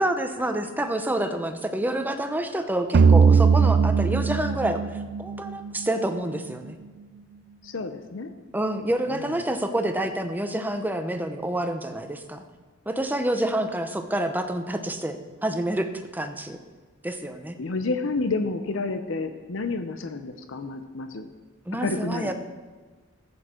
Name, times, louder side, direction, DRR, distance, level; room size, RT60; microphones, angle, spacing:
voice 1, 0.0-6.8 8.5-12.4 12.9-16.6 17.0-17.6 21.7-22.3, right 1 dB, 10° right, 6 dB, 0.8 m, -28 dB
sound 1, 2.9-6.2, right 5 dB, 55° right, 0.4 m, -19 dB
voice 2, 7.6-8.3 9.1-9.4 17.6-21.3 21.8-22.3, left 3 dB, 70° left, 8 dB, 0.7 m, -30 dB
14.0 x 8.6 x 4.4 m, 1.4 s
head